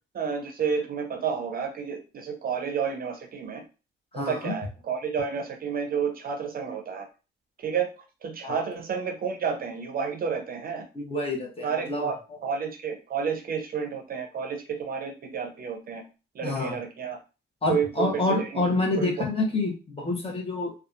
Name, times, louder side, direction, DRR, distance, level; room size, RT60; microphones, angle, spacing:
voice 1, 0.1-3.6 4.1-7.1 7.6-7.9 8.2-10.9 11.6-16.0 16.3-17.2 17.7-18.7 19.0-19.1, right 6 dB, 50° right, 5 dB, 0.6 m, -30 dB
voice 2, 4.1-4.6 8.4-8.6 10.9-12.1 16.4-16.8 17.6-20.7, left 2 dB, 30° left, 0 dB, 0.9 m, -27 dB
2.7 x 2.3 x 2.5 m, 0.32 s
cardioid pair, 90°, 20 cm